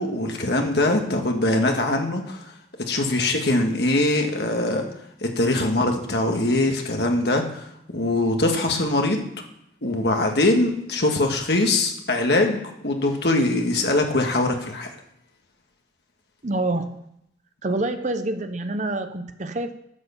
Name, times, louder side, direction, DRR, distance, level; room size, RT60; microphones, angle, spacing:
voice 1, 0.0-2.4 2.9-4.9 5.2-9.3 9.8-14.9, left 2 dB, 65° left, 3 dB, 1.7 m, -22 dB
voice 2, 16.4-17.0 17.6-19.7, right 2 dB, 45° right, 8 dB, 0.8 m, -27 dB
11.0 x 6.7 x 7.0 m, 0.77 s
head